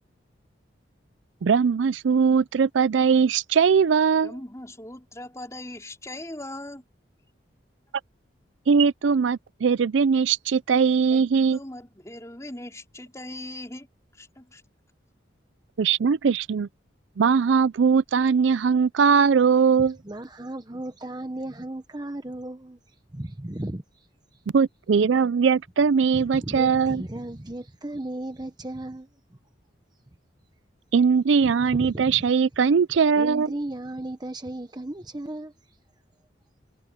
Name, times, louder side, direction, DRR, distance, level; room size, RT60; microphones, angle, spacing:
voice 1, 1.4-4.3 8.7-11.6 15.8-16.7 17.2-20.0 24.5-27.0 30.9-33.5, right 6 dB, 80° right, 0.4 m, -20 dB
voice 2, 4.2-6.8 11.1-13.9 14.1-14.6, left 1 dB, 15° left, 4.5 m, -40 dB
voice 3, 20.0-24.4 26.1-29.1 31.7-32.2 33.2-35.8, right 1 dB, 20° right, 0.9 m, -35 dB
head